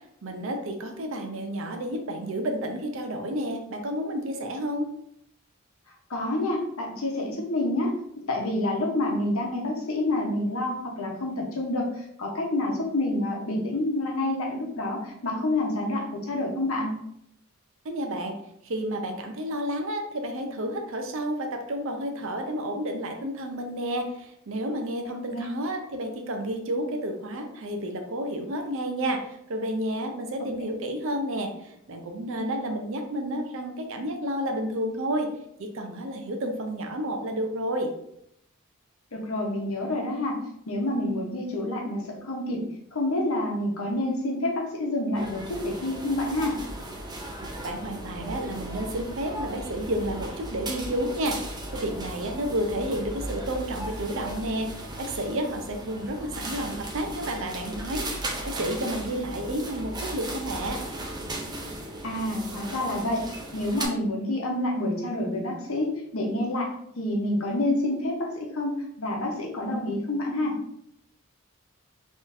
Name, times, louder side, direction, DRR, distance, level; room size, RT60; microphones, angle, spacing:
voice 1, 0.2-4.9 17.8-18.4 18.6-35.3 35.6-37.9 47.3-51.4 51.7-60.8, right 1 dB, 65° right, 4 dB, 0.6 m, -31 dB
voice 2, 6.1-7.9 8.3-16.9 25.3-25.5 39.1-40.4 40.7-42.6 42.9-46.6 62.0-66.7 67.0-70.6, left 1 dB, 75° left, 0 dB, 0.9 m, -28 dB
sound 1, 45.1-63.9, right 1 dB, 20° right, 0.5 m, -36 dB
3.8 x 3.1 x 2.6 m, 0.75 s
head